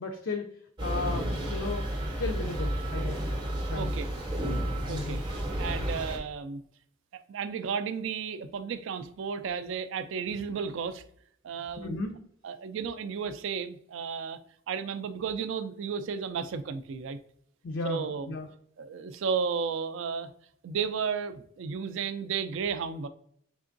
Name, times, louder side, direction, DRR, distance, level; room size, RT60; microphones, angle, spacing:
voice 1, 0.0-1.9 2.2-3.2 3.7-3.9 4.9-5.2 11.8-12.2 17.6-18.5, left 3 dB, 65° left, 3 dB, 0.4 m, -35 dB
sound 1, 0.8-6.2, right 1 dB, 20° right, 0.6 m, -31 dB
voice 2, 3.7-4.1 4.9-5.2 5.6-6.6 7.1-11.0 11.4-12.0 12.4-14.4 14.7-17.2 17.8-18.3 18.8-20.3 20.6-23.1, right 6 dB, 65° right, 12 dB, 0.3 m, -33 dB
3.7 x 3.3 x 2.5 m, 0.68 s
head